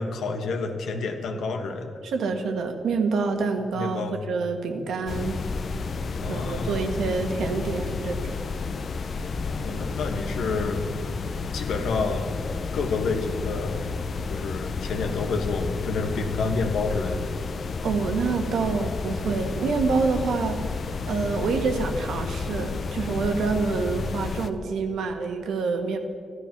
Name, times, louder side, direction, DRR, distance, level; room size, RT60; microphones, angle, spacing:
voice 1, 0.0-1.9 3.7-4.2 6.1-7.0 9.4-10.8 11.5-12.3 12.7-13.8 14.3-17.2 23.9-24.1, left 4 dB, 80° left, 5 dB, 1.5 m, -29 dB
voice 2, 2.0-5.4 6.3-8.3 17.8-20.7 21.1-26.0, right 4 dB, 80° right, 5 dB, 1.6 m, -27 dB
sound 1, 5.1-24.5, left 4 dB, 45° left, 0.6 m, -31 dB
14.5 x 12.5 x 6.0 m, 2.2 s
wide cardioid pair, 140°, 0 cm